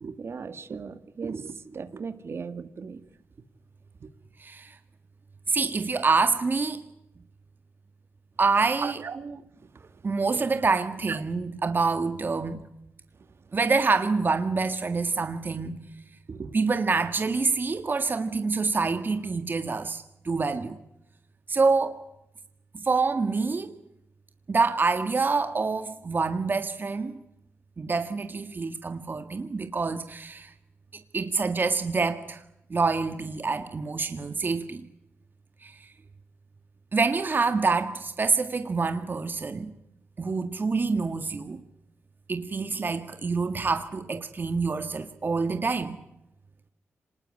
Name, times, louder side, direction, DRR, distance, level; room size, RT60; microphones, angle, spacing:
voice 1, 0.0-3.0 8.8-9.4 11.1-11.2 16.3-16.6, right 5 dB, 55° right, 2.1 m, -36 dB
voice 2, 4.4-4.8 5.5-6.8 8.4-9.0 10.0-12.6 13.5-15.8 16.5-20.8 21.5-22.0 22.8-23.7 24.5-27.2 27.8-30.5 31.1-32.4 32.7-34.8 35.6-35.8 36.9-39.7 40.2-41.6 42.3-46.0, right 4 dB, 40° right, 1.8 m, -26 dB
26.0 x 20.0 x 9.8 m
cardioid pair, 70°, 5 cm